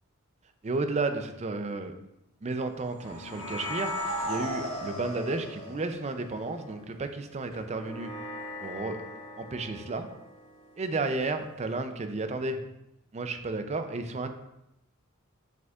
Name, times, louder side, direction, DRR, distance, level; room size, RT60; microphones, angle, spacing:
voice 1, 0.6-1.9 2.4-8.1 8.6-9.0 9.4-10.1 10.8-12.6 13.1-14.3, right 3 dB, 30° right, 8 dB, 0.4 m, -32 dB
sound 1, 2.8-6.4, right 2 dB, 70° right, 1.6 m, -37 dB
sound 2, 3.0-11.7, left 2 dB, 65° left, 0.9 m, -41 dB
7.9 x 5.0 x 2.4 m, 0.89 s
head